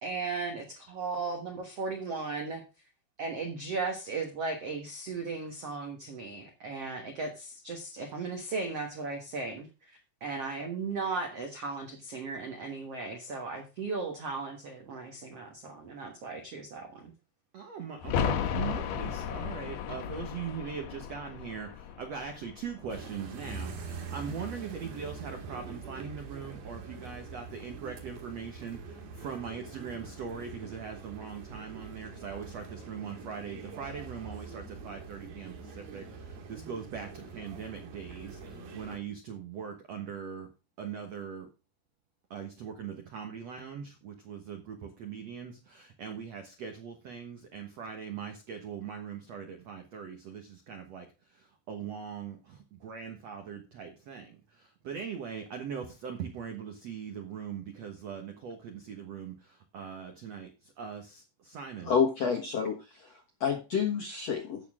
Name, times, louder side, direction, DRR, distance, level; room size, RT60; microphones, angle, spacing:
voice 1, 0.0-2.6 3.2-17.1, right 4 dB, 75° right, 4 dB, 1.4 m, -36 dB
voice 2, 17.5-40.5 40.8-41.5 42.3-61.9, right 7 dB, 90° right, 5 dB, 1.4 m, -41 dB
sound 1, 18.0-23.6 23.9-24.0, left 7 dB, 80° left, 3.5 m, -35 dB
sound 2, 22.9-39.0, right 4 dB, 60° right, 3.7 m, -44 dB
voice 3, 61.8-64.6, left 6 dB, 65° left, 1 dB, 1.6 m, -29 dB
15.5 x 6.3 x 3.6 m, 0.31 s
omnidirectional pair, 5.2 m